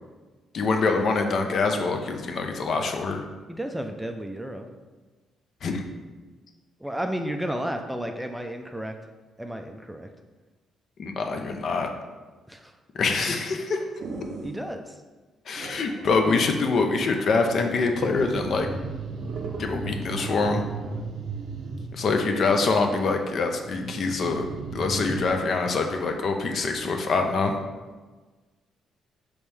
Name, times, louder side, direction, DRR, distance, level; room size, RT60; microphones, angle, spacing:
voice 1, 0.5-3.2 5.6-5.8 11.0-11.9 12.9-13.9 15.5-18.7 19.6-20.6 21.9-24.4 24.7-27.6, left 4 dB, 55° left, 4 dB, 0.6 m, -25 dB
voice 2, 3.5-4.7 6.8-8.9 9.4-10.1 12.5-12.7 14.4-14.9, equal, 5° right, 5 dB, 0.4 m, -32 dB
sound 1, 14.0-14.7 15.6-16.5 17.3-22.2 23.5-25.3, right 4 dB, 60° right, 0.5 m, -35 dB
5.2 x 3.1 x 3.3 m, 1.3 s
cardioid pair, 90°, 0 cm